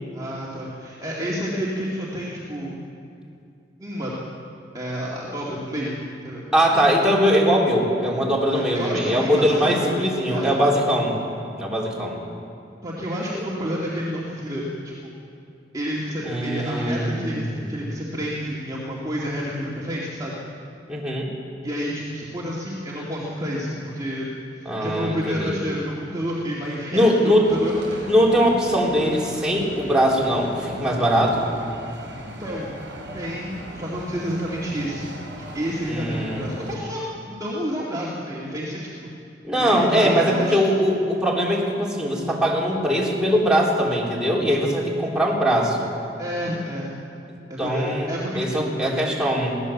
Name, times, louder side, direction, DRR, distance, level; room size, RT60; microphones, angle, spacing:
voice 1, 0.1-2.8 3.8-4.1 4.7-6.0 6.2-6.5 8.4-9.9 10.3-10.5 12.8-15.1 15.7-20.4 21.6-24.3 24.6-28.0 32.2-32.7 33.1-37.0 37.2-39.1 39.6-40.6 46.2-46.9 47.5-48.7, equal, 20° right, -6 dB, 2.4 m, -29 dB
voice 2, 6.5-11.1 11.6-12.2 13.3-13.4 16.3-17.7 20.9-21.3 24.7-25.6 26.9-27.5 28.1-31.5 35.9-36.4 39.4-45.9 47.6-49.6, equal, 5° right, -4 dB, 3.8 m, -21 dB
sound 1, 27.4-36.8, right 1 dB, 65° right, 4.9 m, -39 dB
22.0 x 17.0 x 7.3 m, 2.6 s
head